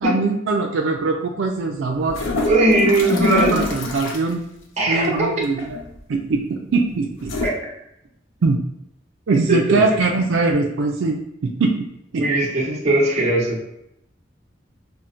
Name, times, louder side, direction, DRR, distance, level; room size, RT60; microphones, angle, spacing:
voice 1, 0.0-2.2 3.1-4.4 4.9-5.8 6.1-7.3 8.4-8.6 9.3-11.2 11.4-11.7 12.1-12.2, right 3 dB, 85° right, 1 dB, 0.4 m, -21 dB
sound 1, 2.0-4.3 5.6-6.0 7.2-7.5, left 3 dB, 90° left, 0.5 m, -25 dB
voice 2, 2.4-3.5 4.8-5.2 7.4-7.5 9.5-9.8 12.2-13.6, right 2 dB, 35° right, -4 dB, 1.0 m, -19 dB
5.6 x 2.1 x 2.5 m, 0.78 s
head